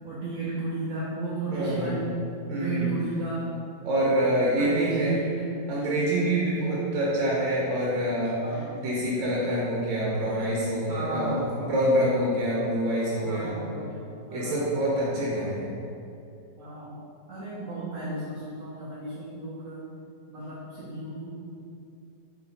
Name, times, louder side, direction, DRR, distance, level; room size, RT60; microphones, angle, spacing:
voice 1, 0.0-2.1 2.5-3.5 4.6-5.4 8.4-8.9 10.9-11.6 13.2-14.8 16.6-17.0 17.3-19.8 20.3-21.3, right 3 dB, 65° right, -8 dB, 0.9 m, -34 dB
voice 2, 1.5-2.0 2.5-2.9 3.8-5.2 5.7-8.4 8.7-13.6 14.3-15.7, right 1 dB, 90° right, -6 dB, 1.4 m, -26 dB
3.1 x 2.8 x 3.8 m, 2.6 s
omnidirectional pair, 2.0 m